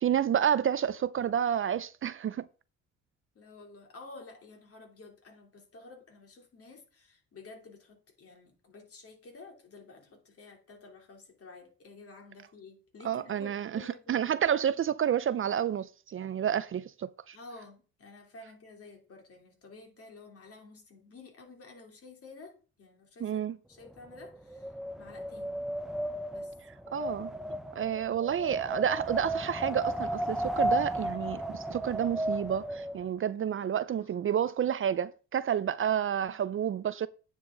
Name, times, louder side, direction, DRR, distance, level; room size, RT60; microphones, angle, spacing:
voice 1, 0.0-2.5 13.0-13.8 14.1-17.4 23.2-23.6 26.9-27.3 27.7-37.1, right 9 dB, 45° right, 0.5 m, -30 dB
voice 2, 3.3-14.3 17.3-25.6 26.3-26.5 34.0-34.1 36.2-36.4, left 3 dB, 50° left, 3.2 m, -51 dB
Wind, 23.9-33.1, right 1 dB, ahead, 0.9 m, -34 dB
9.4 x 7.3 x 3.9 m
cardioid pair, 90°, 30 cm